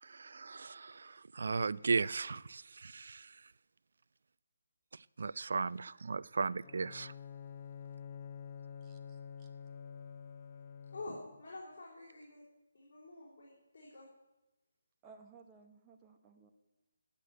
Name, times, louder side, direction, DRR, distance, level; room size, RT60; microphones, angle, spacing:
voice 1, 0.0-3.4 4.9-7.1, right 4 dB, 65° right, 20 dB, 0.3 m, -36 dB
Bowed string instrument, 6.6-11.4, left 7 dB, 25° left, 0.6 m, -48 dB
voice 2, 8.8-9.5 15.0-16.5, right 5 dB, 15° right, 3 dB, 0.8 m, -59 dB
voice 3, 10.9-12.4 12.7-14.1, left 2 dB, 50° left, -6 dB, 3.9 m, -48 dB
9.6 x 8.4 x 9.0 m, 1.0 s
hypercardioid pair, 165°, 0 cm